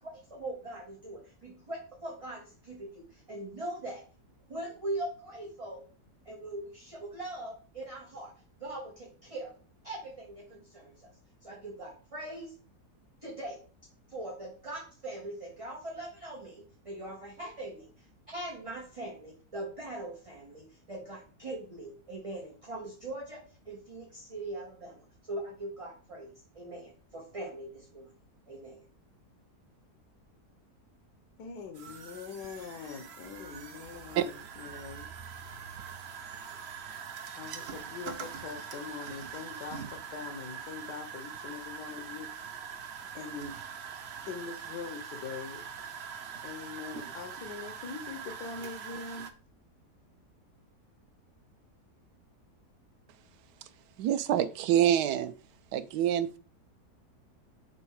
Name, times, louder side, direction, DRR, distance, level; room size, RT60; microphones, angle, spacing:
voice 1, 0.0-4.0 4.5-5.8 6.2-8.3 8.6-9.5 9.8-12.5 13.2-13.6 14.1-28.1 28.5-28.8, right 1 dB, 20° right, 1.3 m, -41 dB
voice 2, 31.4-35.1 37.3-42.5 43.1-43.6 44.3-45.7 46.4-49.3, left 5 dB, 85° left, 1.4 m, -43 dB
sound 1, 31.7-49.3, right 7 dB, 55° right, 0.7 m, -43 dB
voice 3, 54.0-55.3 55.7-56.4, right 10 dB, 85° right, 1.2 m, -26 dB
6.1 x 3.6 x 4.6 m
omnidirectional pair, 1.7 m